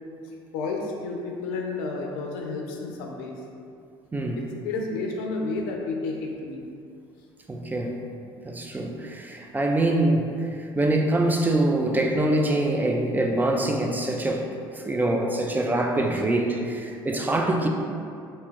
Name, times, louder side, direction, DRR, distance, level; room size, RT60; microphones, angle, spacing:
voice 1, 0.5-3.4 4.4-6.6, left 3 dB, 80° left, 1 dB, 0.4 m, -31 dB
voice 2, 7.5-8.0 8.4-10.2 10.6-14.5 14.7-17.7, right 1 dB, 15° right, 2 dB, 0.3 m, -24 dB
2.7 x 2.3 x 3.1 m, 2.4 s
hypercardioid pair, 75°, 11 cm